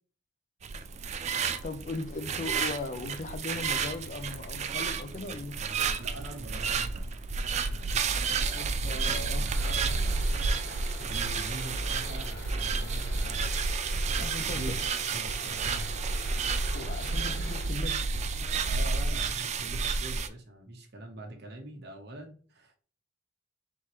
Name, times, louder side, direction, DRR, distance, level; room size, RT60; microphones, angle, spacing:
sound 1, 0.6-20.3, right 4 dB, 35° right, 0.4 m, -31 dB
voice 1, 1.6-5.6 8.5-9.5 14.2-14.6 16.7-18.3, left 2 dB, 40° left, 9 dB, 0.4 m, -38 dB
voice 2, 6.0-7.2 7.7-10.2 11.0-16.1 16.7-17.1 18.7-22.8, right 1 dB, 60° right, 3 dB, 1.0 m, -44 dB
sound 2, 9.5-17.7, left 2 dB, 60° left, 0.9 m, -46 dB
4.2 x 3.7 x 3.0 m, 0.42 s
head